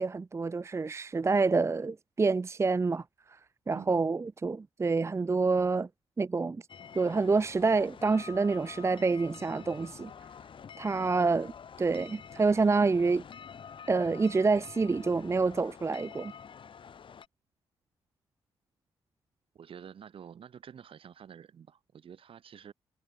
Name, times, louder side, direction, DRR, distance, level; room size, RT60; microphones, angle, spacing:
voice 1, 0.0-3.4 3.7-5.9 6.2-6.6 6.9-10.1 10.8-11.5 11.8-13.2 13.9-16.3, right 4 dB, 25° right, 0.7 m, -27 dB
sound 1, 6.7-17.3, left 7 dB, 55° left, 2.7 m, -48 dB
voice 2, 10.9-11.3 19.5-22.7, right 8 dB, 60° right, 3.0 m, -49 dB
cardioid pair, 70°, 10 cm